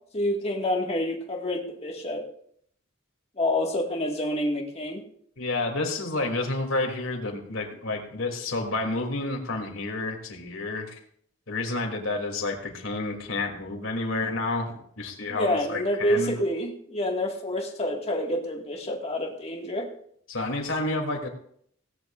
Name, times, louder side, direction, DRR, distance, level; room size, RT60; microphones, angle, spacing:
voice 1, 0.1-2.2 3.4-5.0 15.3-19.9, left 1 dB, 30° left, 1 dB, 2.0 m, -28 dB
voice 2, 5.4-11.0 11.5-16.3 20.3-21.3, left 2 dB, 80° left, 2 dB, 3.0 m, -30 dB
18.0 x 17.5 x 2.6 m, 0.66 s
head